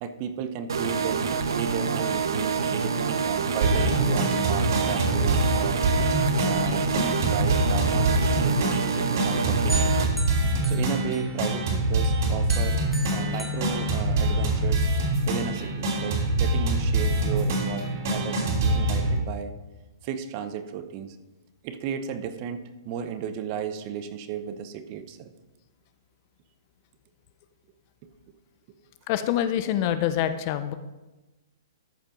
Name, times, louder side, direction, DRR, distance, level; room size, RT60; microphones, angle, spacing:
voice 1, 0.0-5.8 6.4-10.1 10.7-14.9 15.3-19.5 20.0-21.2 21.6-25.3, right 8 dB, 30° right, 10 dB, 0.7 m, -34 dB
sound 1, 0.7-10.1, right 5 dB, 85° right, 1.0 m, -27 dB
sound 2, 3.6-19.2, right 1 dB, 50° right, 3.1 m, -25 dB
sound 3, 9.7-11.6 12.0-14.6, right 1 dB, 5° right, 0.9 m, -39 dB
voice 2, 29.1-30.7, left 11 dB, 35° left, 11 dB, 0.6 m, -25 dB
13.5 x 5.2 x 5.2 m, 1.1 s
hypercardioid pair, 160°, 2 cm